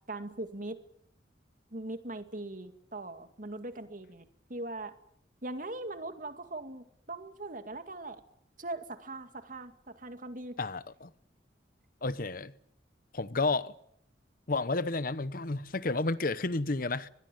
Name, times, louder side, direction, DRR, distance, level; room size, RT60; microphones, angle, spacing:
voice 1, 0.1-0.8 1.7-4.9 5.4-8.2 8.6-10.6, right 2 dB, 45° right, 2.2 m, -40 dB
voice 2, 10.6-11.1 12.0-12.5 13.1-13.7 14.5-17.1, left 3 dB, 50° left, 0.9 m, -31 dB
23.5 x 21.0 x 9.3 m
head